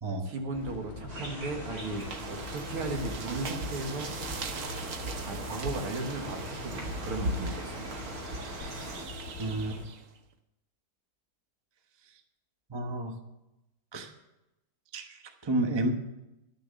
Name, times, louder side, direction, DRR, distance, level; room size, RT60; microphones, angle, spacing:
voice 1, 0.2-4.1 5.2-8.0, right 2 dB, 75° right, 3 dB, 2.5 m, -36 dB
sound 1, 0.5-9.8, left 4 dB, 65° left, 0.6 m, -44 dB
sound 2, 1.1-9.0, right 1 dB, 40° right, 3.2 m, -44 dB
sound 3, 1.7-10.1, right 2 dB, 55° right, 0.9 m, -39 dB
voice 2, 9.4-9.8 12.7-13.2 13.9-14.1 14.9-15.9, right 1 dB, 25° right, 5 dB, 0.6 m, -31 dB
11.5 x 6.8 x 8.3 m, 0.92 s
omnidirectional pair, 2.4 m